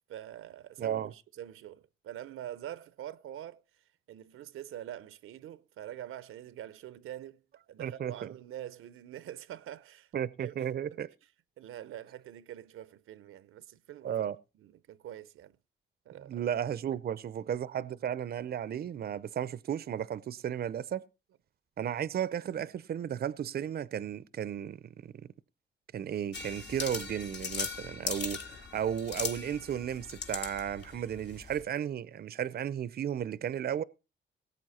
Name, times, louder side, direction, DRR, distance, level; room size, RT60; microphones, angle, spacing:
voice 1, 0.1-3.6 4.1-7.4 7.7-10.1 10.4-10.5 10.9-11.0 11.6-14.2 14.6-15.6 16.1-16.4 16.9-17.0, right 12 dB, 85° right, 0.7 m, -45 dB
voice 2, 0.8-1.1 7.8-8.3 10.1-11.1 14.0-14.4 16.3-21.0 21.8-25.1 25.9-33.8, right 9 dB, 50° right, 0.6 m, -34 dB
sound 1, 26.3-31.6, left 5 dB, 55° left, 2.0 m, -39 dB
18.5 x 8.3 x 4.2 m
cardioid pair, 110°, 21 cm